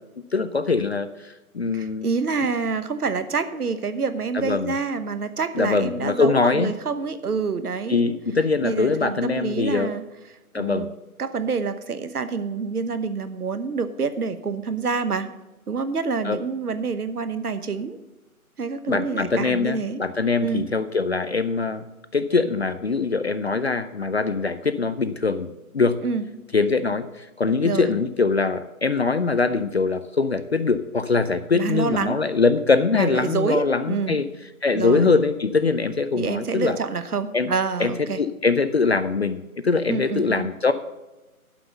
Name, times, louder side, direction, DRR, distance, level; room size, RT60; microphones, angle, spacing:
voice 1, 0.3-2.1 4.3-4.7 5.5-6.7 7.9-9.9 10.5-10.9 16.2-16.4 18.9-21.9 22.1-25.5 25.7-26.0 26.5-34.3 34.6-36.8 37.3-37.5 37.8-40.7, left 4 dB, 45° left, 12 dB, 0.5 m, -22 dB
voice 2, 1.7-8.0 8.6-10.0 10.5-10.9 11.2-15.3 15.7-18.0 18.6-20.0 20.4-20.7 26.0-26.2 27.6-27.9 31.5-32.2 32.9-34.2 34.7-35.1 36.1-38.2 39.9-40.5, right 5 dB, 90° right, 11 dB, 1.1 m, -27 dB
11.5 x 5.6 x 6.7 m, 1.1 s
figure-of-eight pair, 165°, 44 cm